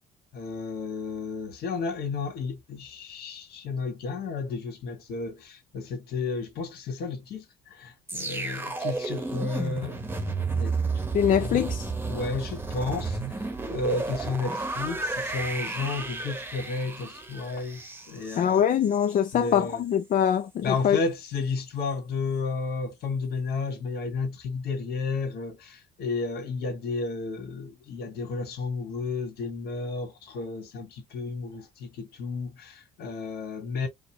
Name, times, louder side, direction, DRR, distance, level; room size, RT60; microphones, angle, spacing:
voice 1, 0.3-10.0 10.5-10.8 11.4-11.7 12.1-13.2 13.7-17.8 18.1-18.6 19.3-19.8 20.6-33.9, left 4 dB, 70° left, 1.7 m, -32 dB
sound 1, 8.1-19.2 19.5-19.7, right 3 dB, 10° right, 1.0 m, -32 dB
voice 2, 11.1-11.8 18.4-21.0, left 9 dB, 50° left, 0.6 m, -23 dB
4.8 x 2.0 x 2.9 m
cardioid pair, 110°, 17 cm